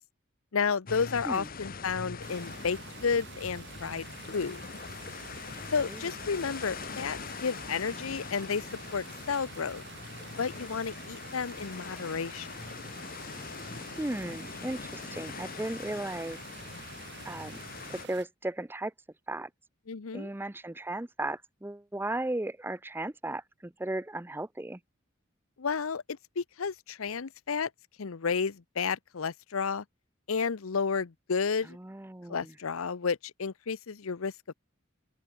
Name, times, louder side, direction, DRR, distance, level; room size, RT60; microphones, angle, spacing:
voice 1, 0.5-4.6 5.7-8.7 8.9-9.8 10.4-12.5 19.9-20.3 25.6-27.7 28.0-29.8 30.3-31.8 32.3-34.5, left 5 dB, 85° left, 0.7 m, -32 dB
sound 1, 0.9-18.1, left 4 dB, 45° left, 1.1 m, -43 dB
sound 2, 2.2-18.2, right 5 dB, 55° right, 5.5 m, -48 dB
voice 2, 5.8-6.1 13.8-16.4 17.2-17.6 17.9-18.9 19.3-19.5 20.1-24.8 31.7-32.5, right 1 dB, 10° right, 0.5 m, -36 dB
open air
head